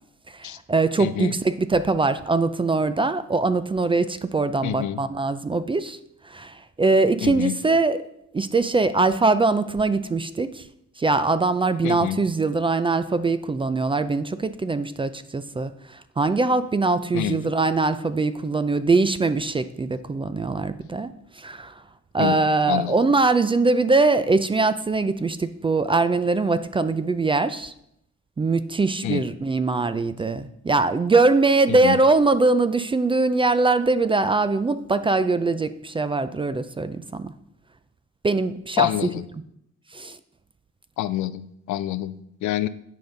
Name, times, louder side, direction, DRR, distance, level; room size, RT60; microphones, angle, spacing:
voice 1, 0.4-6.0 6.3-8.0 8.3-10.6 11.0-15.7 16.2-21.1 21.4-21.7 22.1-27.7 28.4-37.3 38.2-38.9 39.9-40.2, right 3 dB, 20° right, 13 dB, 0.3 m, -22 dB
voice 2, 1.0-1.3 4.6-5.0 7.2-7.5 11.8-12.3 17.1-17.5 22.2-22.4 22.7-23.0 29.0-29.2 31.7-32.0 38.8-39.3 41.0-42.7, left 14 dB, 70° left, 15 dB, 0.5 m, -27 dB
9.2 x 5.2 x 3.8 m, 0.75 s
cardioid pair, 90°, 30 cm